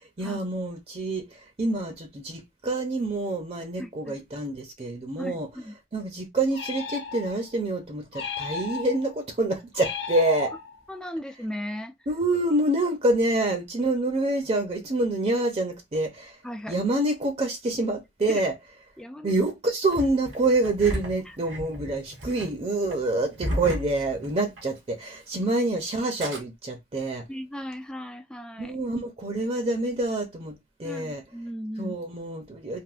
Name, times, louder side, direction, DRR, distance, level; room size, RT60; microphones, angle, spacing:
voice 1, 0.2-5.5 5.9-10.5 12.1-16.4 16.7-18.5 19.2-27.2 28.6-31.2 31.8-32.8, right 2 dB, 35° right, 0.6 m, -27 dB
voice 2, 3.8-4.1 5.2-5.7 10.9-11.9 16.4-16.8 18.3-18.4 19.0-19.3 27.3-28.8 30.8-32.0, equal, 5° left, 0.3 m, -36 dB
sound 1, 6.5-7.6 8.1-9.2 9.7-10.9, left 5 dB, 90° left, 0.8 m, -35 dB
Engine starting, 19.9-24.8 25.0-25.1 26.0-26.4, equal, 85° right, 1.4 m, -34 dB
3.5 x 2.5 x 2.4 m
head